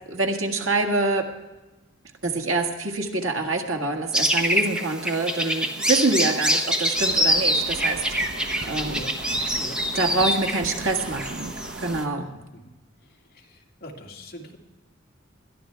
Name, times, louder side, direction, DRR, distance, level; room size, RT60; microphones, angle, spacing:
voice 1, 0.1-1.3 2.2-8.0 8.6-9.0 9.9-11.5 11.8-12.3, right 2 dB, 85° right, 3 dB, 1.8 m, -25 dB
sound 1, 4.1-12.0, equal, 5° right, 1.1 m, -25 dB
sound 2, 6.9-12.0, right 2 dB, 55° right, 0.8 m, -38 dB
voice 2, 13.0-14.6, equal, 50° left, 0 dB, 2.3 m, -42 dB
21.0 x 13.5 x 3.5 m, 1.1 s
head